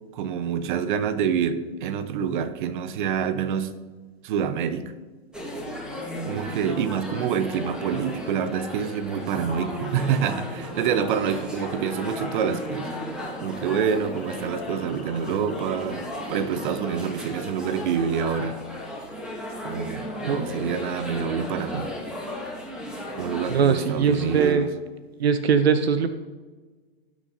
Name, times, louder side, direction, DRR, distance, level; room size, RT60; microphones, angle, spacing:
voice 1, 0.1-3.7 4.2-4.8 6.3-12.9 13.4-16.0 16.3-18.6 19.6-21.9 23.2-24.7, right 7 dB, 50° right, 12 dB, 1.0 m, -27 dB
sound 1, 5.3-24.5, left 1 dB, ahead, 2.3 m, -35 dB
sound 2, 13.2-19.1, left 6 dB, 80° left, 1.6 m, -44 dB
voice 2, 23.5-24.7 25.2-26.1, right 6 dB, 80° right, 11 dB, 0.8 m, -21 dB
18.5 x 6.3 x 4.1 m, 1.3 s
hypercardioid pair, 115°, 31 cm